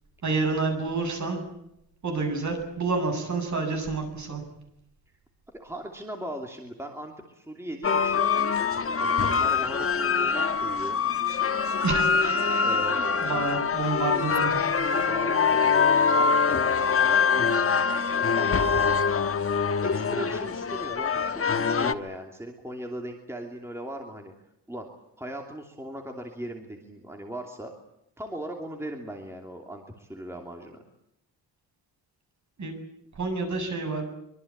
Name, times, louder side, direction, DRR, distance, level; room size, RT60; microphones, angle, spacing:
voice 1, 0.2-1.4 2.0-4.4 11.8-12.5 13.2-14.6 32.6-32.7 33.2-34.0, right 3 dB, 40° right, 5 dB, 7.9 m, -28 dB
voice 2, 5.5-8.3 9.0-11.0 12.6-13.5 14.9-17.6 18.3-18.7 19.8-24.3 24.7-24.9 25.2-27.7 28.2-30.8, right 1 dB, 5° right, 2 dB, 2.8 m, -38 dB
sound 1, 7.8-21.9, left 5 dB, 30° left, 1.2 m, -24 dB
25.0 x 24.0 x 8.7 m, 0.80 s
wide cardioid pair, 170°, 42 cm